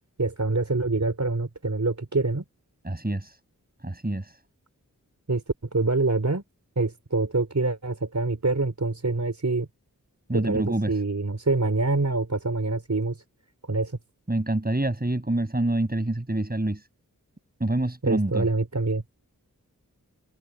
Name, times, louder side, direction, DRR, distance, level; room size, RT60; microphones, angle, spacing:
voice 1, 0.2-2.4 5.3-5.4 5.7-6.4 6.8-9.7 10.3-13.2 13.7-14.0 18.0-19.0, right 3 dB, 50° right, 4.6 m, -25 dB
voice 2, 2.8-3.3 3.8-4.3 10.3-11.0 14.3-16.8 17.6-18.5, right 1 dB, 25° right, 7.6 m, -26 dB
wide cardioid pair, 60°, 35 cm